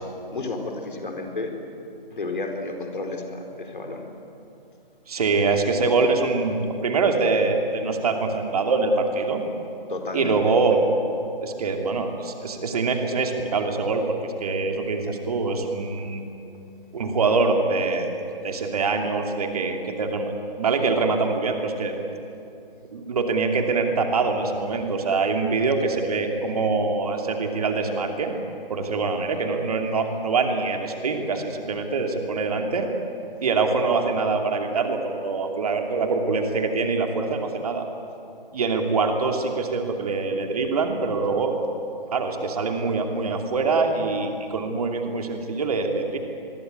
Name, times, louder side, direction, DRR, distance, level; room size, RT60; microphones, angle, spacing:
voice 1, 0.3-1.5 2.1-4.1 9.9-10.4, left 2 dB, 60° left, 3 dB, 4.6 m, -31 dB
voice 2, 5.1-9.4 10.1-10.8 11.4-16.2 16.9-18.1 18.4-21.9 22.9-28.3 28.7-32.9 33.4-37.9 38.5-41.5 42.1-46.2, right 4 dB, 40° right, 4 dB, 2.8 m, -24 dB
25.5 x 21.0 x 9.5 m, 2.7 s
figure-of-eight pair, 145°, 29 cm